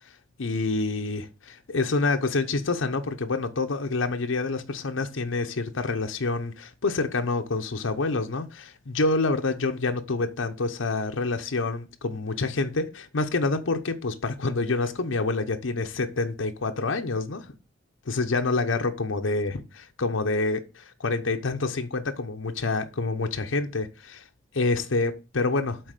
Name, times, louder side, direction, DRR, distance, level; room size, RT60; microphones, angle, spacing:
voice 1, 0.4-17.5 18.1-24.2 24.5-25.8, left 3 dB, 90° left, 0.8 m, -27 dB
7.8 x 4.1 x 6.5 m
head